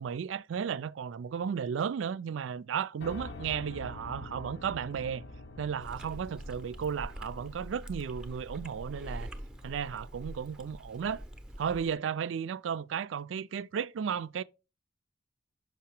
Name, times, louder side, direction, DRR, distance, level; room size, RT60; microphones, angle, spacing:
voice 1, 0.0-5.2 5.6-9.3 9.6-11.2 11.6-14.4, right 7 dB, 90° right, 0.4 m, -34 dB
Piano, 3.0-11.0, left 1 dB, 65° left, 0.7 m, -47 dB
Chewing mastication, 5.8-11.9, equal, 5° right, 0.6 m, -44 dB
5.8 x 5.5 x 4.3 m
head